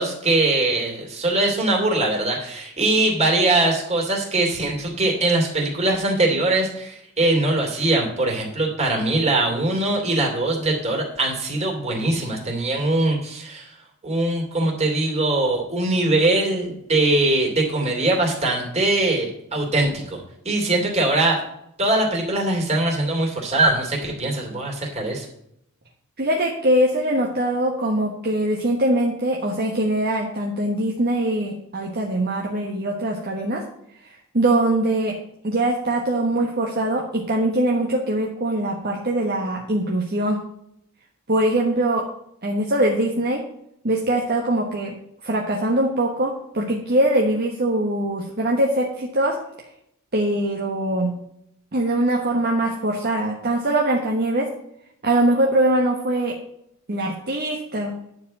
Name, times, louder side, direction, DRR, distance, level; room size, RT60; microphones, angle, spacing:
voice 1, 0.0-13.7 14.0-20.2 20.4-21.4 21.8-25.3, right 2 dB, 30° right, -1 dB, 3.0 m, -22 dB
voice 2, 26.2-33.6 34.0-35.1 35.4-40.4 41.3-42.0 42.4-43.4 43.8-44.9 45.2-49.4 50.1-51.1 51.7-54.5 55.0-56.3 56.9-57.9, right 1 dB, 45° right, 0 dB, 1.3 m, -22 dB
10.5 x 4.7 x 7.4 m, 0.76 s
head